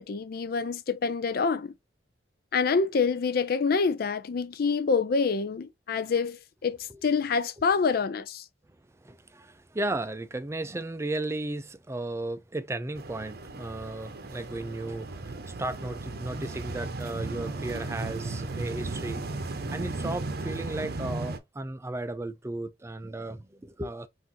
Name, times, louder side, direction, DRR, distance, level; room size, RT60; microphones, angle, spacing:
voice 1, 0.0-1.7 2.5-8.4, left 5 dB, 55° left, 0.4 m, -27 dB
voice 2, 9.0-19.3 19.7-24.1, right 2 dB, 15° right, 0.4 m, -35 dB
sound 1, 13.0-21.4, right 2 dB, 55° right, 0.7 m, -35 dB
5.9 x 2.6 x 2.7 m
head